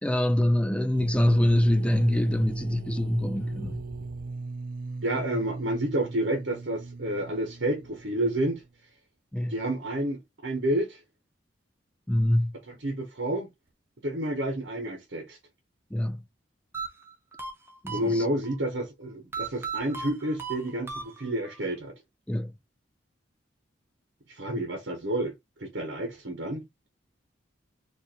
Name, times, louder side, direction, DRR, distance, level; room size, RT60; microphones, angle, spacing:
voice 1, 0.0-3.8 9.3-9.5 12.1-12.5 15.9-16.2 17.8-18.2 22.3-22.5, left 1 dB, 5° left, 0.4 m, -24 dB
sound 1, 0.9-8.6, right 3 dB, 50° right, 0.6 m, -38 dB
voice 2, 5.0-8.6 9.5-11.0 12.7-13.5 14.0-15.4 17.9-21.9 24.3-25.3 25.6-26.7, right 1 dB, 65° right, 1.1 m, -30 dB
sound 2, 16.7-18.6 19.3-21.6, right 5 dB, 15° right, 0.8 m, -37 dB
4.5 x 2.6 x 2.9 m
head